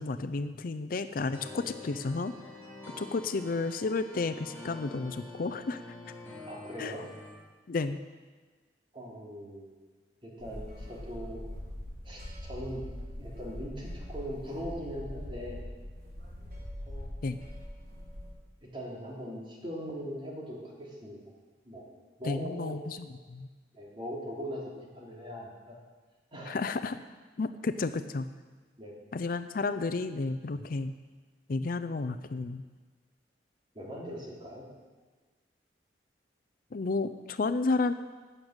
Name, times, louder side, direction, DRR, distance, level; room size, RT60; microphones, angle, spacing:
voice 1, 0.0-2.3 3.0-5.8 6.8-6.9 7.7-8.0 17.2-17.4 22.2-23.5 26.5-27.0 27.4-28.3 29.1-30.9 31.5-32.6 36.7-37.9, left 3 dB, 55° left, 11 dB, 0.5 m, -32 dB
sound 1, 1.2-7.3, left 2 dB, 15° left, 5.1 m, -46 dB
voice 2, 6.5-7.0 8.9-9.8 10.2-11.4 12.0-12.8 13.2-15.6 16.9-17.5 18.7-21.2 21.6-21.9 22.2-22.7 23.7-24.6 24.9-25.8 26.3-26.6 28.8-28.9 33.7-34.7, equal, 30° right, -3 dB, 3.0 m, -40 dB
sound 2, 10.4-18.3, left 1 dB, 55° right, 4.6 m, -42 dB
12.5 x 6.6 x 8.7 m, 1.4 s
head